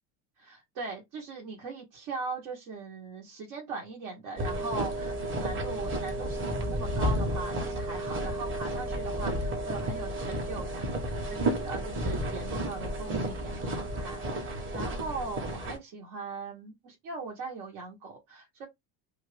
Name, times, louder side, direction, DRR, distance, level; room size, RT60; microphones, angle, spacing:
voice 1, 0.4-18.7, right 4 dB, 70° right, 1.4 m, -40 dB
sound 1, 4.4-15.8, right 1 dB, 25° right, 1.1 m, -32 dB
2.8 x 2.6 x 3.3 m
cardioid pair, 130°, 44 cm